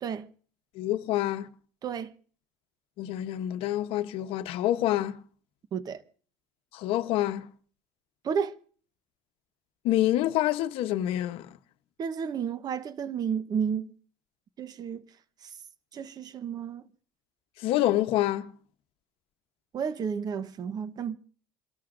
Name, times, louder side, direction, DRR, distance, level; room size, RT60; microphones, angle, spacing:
voice 1, 0.8-1.5 3.0-5.2 6.7-7.5 9.8-11.5 17.6-18.5, left 14 dB, 65° left, 0.9 m, -27 dB
voice 2, 1.8-2.1 5.7-6.0 8.2-8.6 12.0-13.9 14.6-15.0 15.4-15.5 15.9-16.8 19.7-21.2, right 7 dB, 40° right, 1.0 m, -32 dB
28.5 x 13.0 x 2.6 m
supercardioid pair, 95°, 10 cm